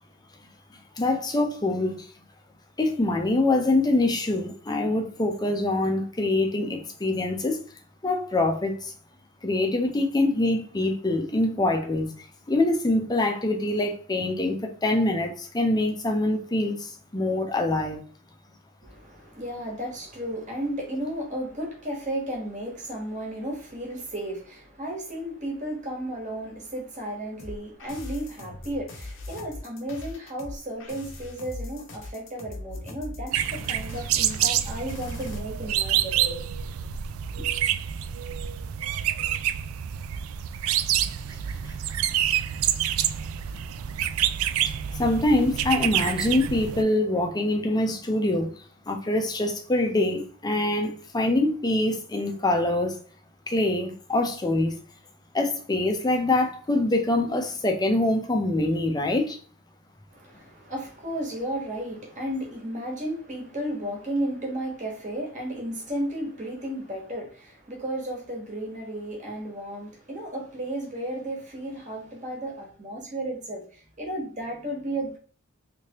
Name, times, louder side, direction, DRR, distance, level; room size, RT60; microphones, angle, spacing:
voice 1, 0.7-2.0 2.8-7.6 8.0-8.9 9.4-18.0 44.9-48.6 48.9-53.0 53.5-54.8 55.3-59.4, left 2 dB, 20° left, 0.6 m, -24 dB
voice 2, 18.8-36.4 37.3-37.5 60.1-75.2, right 1 dB, 35° right, 1.3 m, -34 dB
sound 1, 27.4-35.4, left 2 dB, 65° left, 0.9 m, -40 dB
sound 2, 33.3-46.8, right 11 dB, 85° right, 0.3 m, -27 dB
3.4 x 3.2 x 2.9 m
head